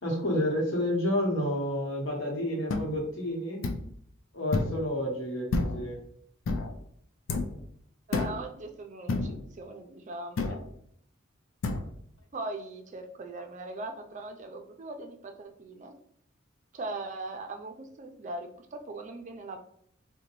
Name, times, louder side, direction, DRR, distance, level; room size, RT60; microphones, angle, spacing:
voice 1, 0.0-3.6 4.3-6.0, left 1 dB, 70° left, 0 dB, 1.0 m, -30 dB
sound 1, 2.7-2.9 3.6-3.9 4.5-4.8 5.5-5.9 6.5-6.7 7.3-7.6 8.1-8.5 9.1-9.4 10.4-10.7 11.6-11.9, left 3 dB, 90° left, 0.4 m, -29 dB
voice 2, 8.1-10.6 12.3-16.0 16.7-19.6, right 2 dB, 40° right, 5 dB, 0.4 m, -40 dB
3.8 x 2.2 x 2.9 m, 0.69 s
head